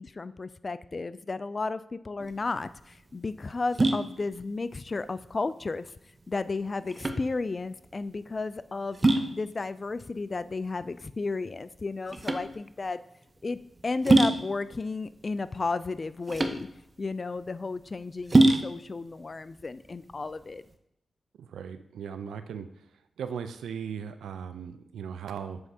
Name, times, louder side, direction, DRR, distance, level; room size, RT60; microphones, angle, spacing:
voice 1, 0.0-5.9 6.3-9.0 9.3-13.0 13.4-16.7 17.0-20.6, left 3 dB, 45° left, 15 dB, 0.3 m, -33 dB
sound 1, 2.2-20.7, right 2 dB, 35° right, 0.7 m, -28 dB
voice 2, 21.4-22.7 23.2-25.6, right 7 dB, 90° right, 10 dB, 0.4 m, -37 dB
7.9 x 4.6 x 2.7 m, 0.76 s
supercardioid pair, 45°, 0 cm